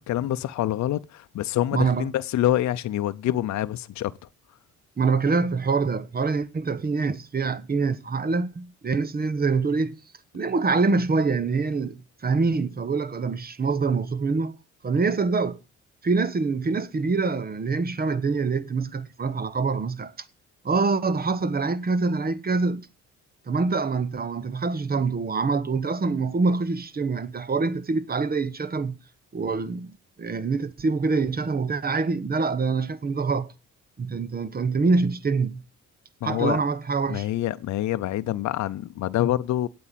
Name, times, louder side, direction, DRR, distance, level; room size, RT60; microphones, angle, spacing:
voice 1, 0.0-4.1 36.2-36.6 37.1-39.7, left 13 dB, 65° left, 0.6 m, -26 dB
voice 2, 1.7-2.1 5.0-10.0 10.3-14.6 14.8-15.6 16.0-20.1 20.6-22.9 23.5-29.0 29.3-29.9 30.2-33.5 34.0-35.6 36.2-37.3, right 4 dB, 30° right, 1.1 m, -25 dB
8.6 x 8.4 x 9.1 m
cardioid pair, 90°, 30 cm